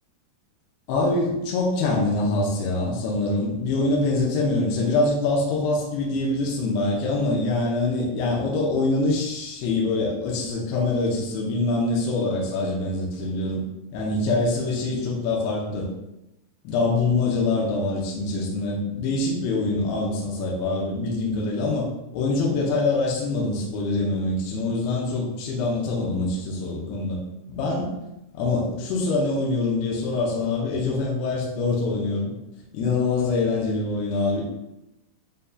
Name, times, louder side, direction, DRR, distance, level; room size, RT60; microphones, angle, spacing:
voice 1, 0.9-13.6 13.9-15.9 16.6-21.9 22.1-27.2 27.5-27.9 28.3-32.3 32.7-34.6, left 2 dB, 80° left, -3 dB, 2.5 m, -24 dB
7.7 x 2.7 x 2.3 m, 0.92 s
omnidirectional pair, 5.0 m